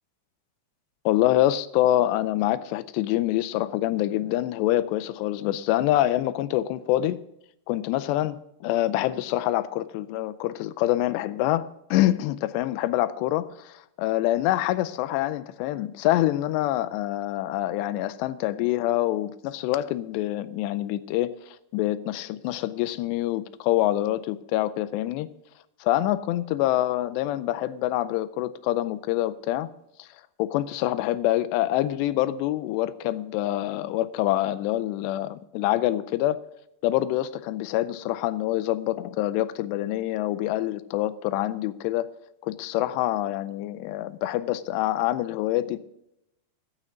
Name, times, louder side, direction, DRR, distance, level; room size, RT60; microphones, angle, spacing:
voice 1, 1.1-7.2 7.7-25.3 25.8-29.7 30.0-30.1 30.4-36.4 36.8-42.1 42.4-45.8, left 14 dB, 85° left, 2.7 m, -26 dB
15.0 x 9.7 x 3.8 m
omnidirectional pair, 5.0 m